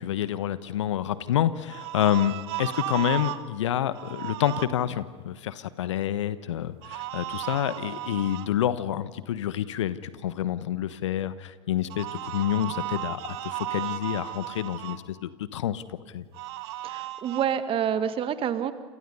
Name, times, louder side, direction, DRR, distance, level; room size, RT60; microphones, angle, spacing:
voice 1, 0.0-15.8 16.1-16.2, left 11 dB, 70° left, 15 dB, 1.1 m, -28 dB
sound 1, 1.7-3.4 3.9-4.6 6.8-8.5 11.9-15.0 16.3-17.5, right 15 dB, 55° right, 1.4 m, -35 dB
voice 2, 16.8-18.7, right 9 dB, 35° right, 11 dB, 1.8 m, -27 dB
29.0 x 28.0 x 5.5 m, 1.4 s
figure-of-eight pair, 80°, 16 cm